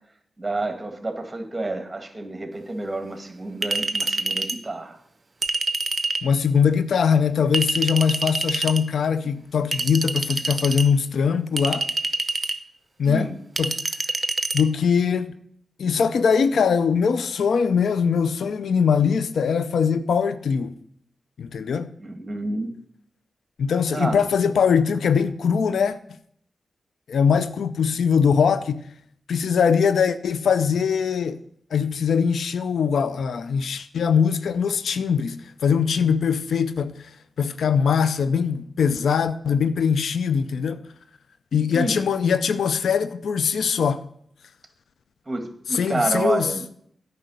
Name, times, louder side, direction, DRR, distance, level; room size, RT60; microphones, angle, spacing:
voice 1, 0.4-5.0 13.0-13.4 22.0-22.7 23.9-24.2 41.7-42.0 45.3-46.6, right 2 dB, 25° right, 1.8 m, -29 dB
Chink clink, 3.6-4.6 5.4-6.3 7.5-8.8 9.7-10.9 11.6-12.6 13.6-14.6, right 3 dB, 45° right, 0.6 m, -26 dB
voice 2, 6.2-11.9 13.0-13.3 13.6-13.8 14.5-15.3 15.8-20.7 21.4-21.9 23.6-26.0 27.1-28.8 29.3-31.4 31.7-36.9 37.4-40.8 41.5-44.0 45.7-46.5, left 6 dB, 85° left, 0.5 m, -21 dB
9.2 x 5.5 x 7.9 m
cardioid pair, 50°, 0 cm